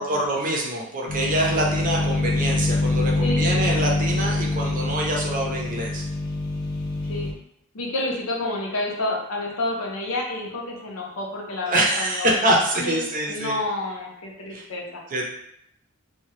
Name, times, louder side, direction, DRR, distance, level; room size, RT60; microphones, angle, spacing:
voice 1, 0.0-6.0 11.7-13.6 14.5-14.7 15.1-15.3, right 1 dB, 40° right, -1 dB, 0.6 m, -25 dB
sound 1, 1.1-7.3, left 2 dB, 45° left, 0.4 m, -25 dB
voice 2, 7.7-12.4 12.8-13.0 13.3-15.0, left 2 dB, 75° left, -1 dB, 0.7 m, -29 dB
2.7 x 2.2 x 3.1 m, 0.74 s
head